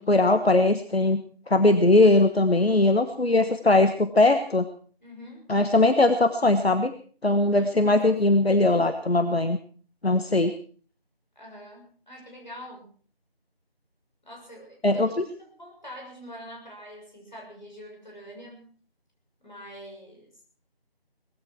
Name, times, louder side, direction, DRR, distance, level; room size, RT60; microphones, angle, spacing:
voice 1, 0.0-4.7 5.5-6.9 7.2-9.6 10.0-10.5 14.8-15.2, left 2 dB, 80° left, 9 dB, 1.3 m, -20 dB
voice 2, 5.0-5.5 7.5-8.2 11.4-12.9 14.2-18.7 19.4-20.4, equal, 45° left, -1 dB, 6.8 m, -45 dB
19.0 x 15.0 x 4.6 m, 0.44 s
figure-of-eight pair, 180°, 31 cm